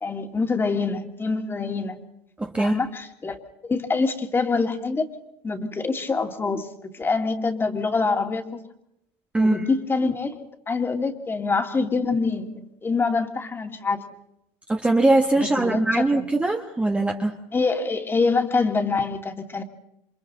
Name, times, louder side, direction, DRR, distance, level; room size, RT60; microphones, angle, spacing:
voice 1, 0.0-2.0 2.6-3.4 3.6-5.1 5.4-8.6 9.4-14.0 15.4-16.3 17.5-19.6, left 4 dB, 15° left, 5 dB, 2.3 m, -25 dB
voice 2, 2.4-2.8 9.3-9.6 14.7-17.4, right 2 dB, 10° right, 2 dB, 1.4 m, -21 dB
28.5 x 26.0 x 4.0 m, 0.82 s
cardioid pair, 145°, 13 cm